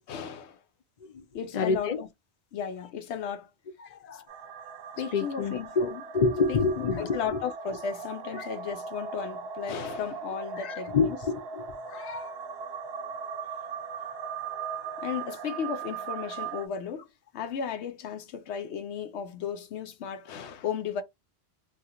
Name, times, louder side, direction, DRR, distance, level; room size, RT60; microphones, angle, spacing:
voice 1, 0.1-0.6 1.3-2.1 2.5-3.5 4.1-4.2 5.0-6.0 6.5-11.2 15.0-17.0 17.3-21.0, left 7 dB, 85° left, 0.9 m, -35 dB
voice 2, 1.5-2.0 3.8-4.2 5.1-7.4 8.3-8.5 10.6-12.3, left 4 dB, 45° left, 0.7 m, -28 dB
sound 1, 4.3-16.7, right 6 dB, 70° right, 0.8 m, -39 dB
2.8 x 2.4 x 3.5 m
omnidirectional pair, 1.1 m